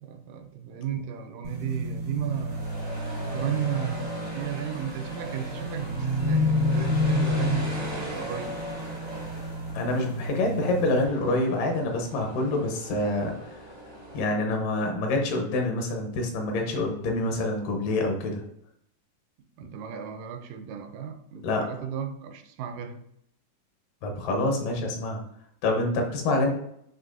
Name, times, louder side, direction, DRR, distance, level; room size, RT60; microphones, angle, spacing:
voice 1, 0.0-2.6 3.2-8.6 19.6-23.0, right 8 dB, 80° right, 7 dB, 2.0 m, -34 dB
sound 1, 1.4-11.0, left 1 dB, 55° right, 0.8 m, -30 dB
sound 2, 2.3-14.2, equal, 30° right, 0.4 m, -40 dB
voice 2, 9.7-13.3 14.1-18.4 21.4-21.6 24.0-25.2 25.6-26.5, left 2 dB, 80° left, 2 dB, 2.4 m, -26 dB
7.3 x 2.9 x 2.5 m, 0.74 s
omnidirectional pair, 3.9 m